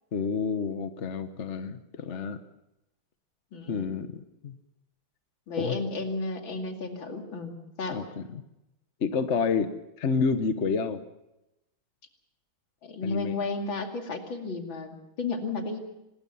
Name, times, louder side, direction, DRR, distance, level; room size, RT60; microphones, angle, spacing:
voice 1, 0.1-2.4 3.7-4.5 5.6-5.8 7.9-8.4 9.0-9.7 10.0-11.0 13.0-13.4, left 5 dB, 45° left, 9 dB, 1.1 m, -29 dB
voice 2, 3.5-3.9 5.5-8.0 12.8-15.8, left 3 dB, 65° left, 3 dB, 3.2 m, -33 dB
25.5 x 20.5 x 5.6 m, 0.90 s
omnidirectional pair, 2.3 m